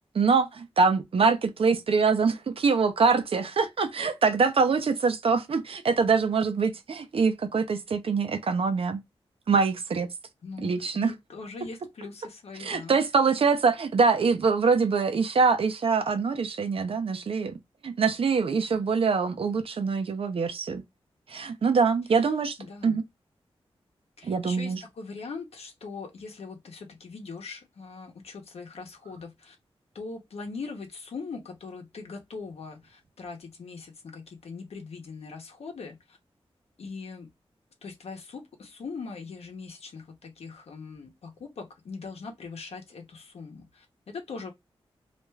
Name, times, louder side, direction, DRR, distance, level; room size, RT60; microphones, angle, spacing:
voice 1, 0.1-9.0 9.5-10.1 10.6-11.1 12.6-17.6 17.8-20.8 21.3-22.6 22.8-23.0 24.2-24.8, right 5 dB, 65° right, 0.6 m, -24 dB
voice 2, 10.4-13.0 22.1-22.3 22.6-23.0 24.2-29.6 29.9-36.2 36.8-37.3 37.8-44.5, left 4 dB, 85° left, 0.8 m, -41 dB
2.5 x 2.3 x 3.1 m
wide cardioid pair, 105°, 10 cm